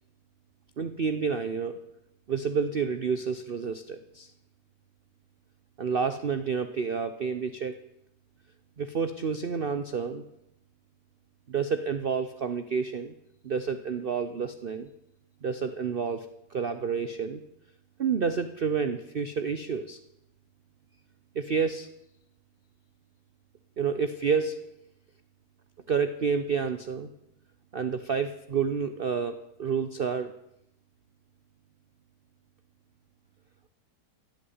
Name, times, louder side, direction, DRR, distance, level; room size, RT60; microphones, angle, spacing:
voice 1, 0.8-1.8 2.3-4.3 5.8-7.7 8.8-10.2 11.5-13.1 13.4-14.9 15.4-16.3 16.5-17.4 18.0-20.0 21.3-21.9 23.8-24.6 25.9-27.1 27.7-30.3, right 6 dB, 45° right, 10 dB, 0.7 m, -29 dB
17.0 x 7.1 x 9.5 m, 0.83 s
omnidirectional pair, 1.8 m